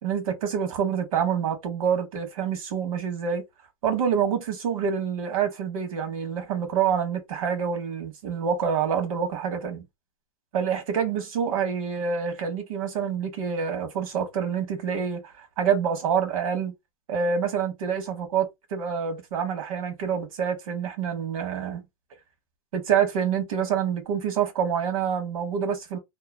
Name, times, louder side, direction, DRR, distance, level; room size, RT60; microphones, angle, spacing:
voice 1, 0.0-3.4 3.8-9.8 10.5-16.7 17.1-21.8 22.7-26.0, right 7 dB, 70° right, 1.3 m, -27 dB
2.9 x 2.3 x 2.2 m
supercardioid pair, 145°, 19 cm